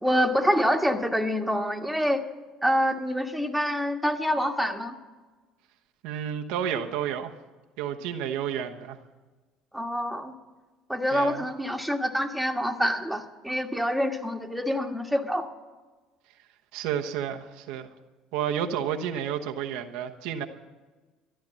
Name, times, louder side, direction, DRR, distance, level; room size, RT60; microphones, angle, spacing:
voice 1, 0.0-2.2 2.6-5.0 9.7-10.3 10.9-15.5, equal, ahead, 2 dB, 1.6 m, -26 dB
voice 2, 6.0-7.3 7.8-9.0 11.1-11.5 16.7-17.9 18.3-20.5, right 9 dB, 75° right, 4 dB, 1.0 m, -31 dB
13.5 x 11.5 x 7.5 m, 1.3 s
hypercardioid pair, 70°, 0 cm